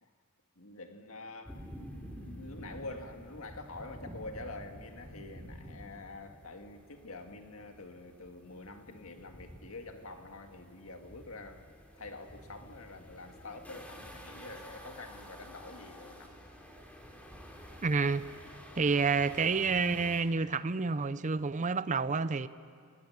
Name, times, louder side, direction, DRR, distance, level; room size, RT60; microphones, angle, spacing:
voice 1, 0.6-1.6 2.2-11.7 12.0-16.3, left 2 dB, 65° left, 2.0 m, -46 dB
sound 1, 1.4-20.2, equal, 5° left, 2.7 m, -50 dB
voice 2, 17.8-18.2 18.8-22.5, right 4 dB, 35° right, 0.6 m, -29 dB
28.5 x 20.0 x 7.3 m
head